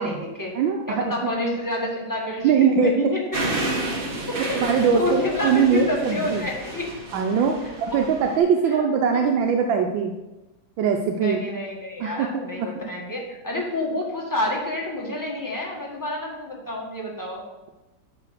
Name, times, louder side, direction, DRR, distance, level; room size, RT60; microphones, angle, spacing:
voice 1, 0.0-0.5 0.9-3.2 4.3-4.6 4.9-6.9 7.6-7.7 8.6-8.8 9.1-9.3 11.1-17.4, left 1 dB, 10° left, -2 dB, 1.4 m, -29 dB
voice 2, 0.5-1.3 2.4-3.1 4.5-6.4 7.1-10.1 10.8-11.4 12.0-12.9, right 6 dB, 85° right, 3 dB, 1.4 m, -22 dB
sound 1, 3.3-8.4, right 2 dB, 35° right, 1.2 m, -31 dB
8.8 x 3.8 x 6.5 m, 1.0 s
omnidirectional pair, 2.1 m